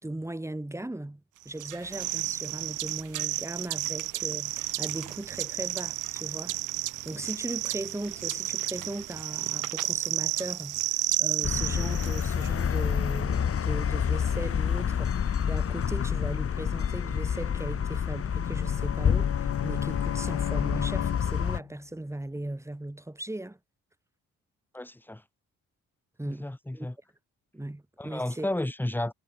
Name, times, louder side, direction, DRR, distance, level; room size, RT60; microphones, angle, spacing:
voice 1, 0.0-10.8 11.2-23.6 26.2-26.9 27.5-28.5, right 1 dB, 10° right, 5.0 m, -38 dB
sound 1, 1.6-12.5, right 15 dB, 85° right, 1.6 m, -32 dB
sound 2, 11.4-21.6, left 8 dB, 50° left, 2.9 m, -28 dB
Bowed string instrument, 18.1-21.8, left 13 dB, 80° left, 6.1 m, -36 dB
voice 2, 24.7-25.2 26.3-27.0 28.0-29.1, left 1 dB, 5° left, 2.1 m, -32 dB
cardioid pair, 90°, 30 cm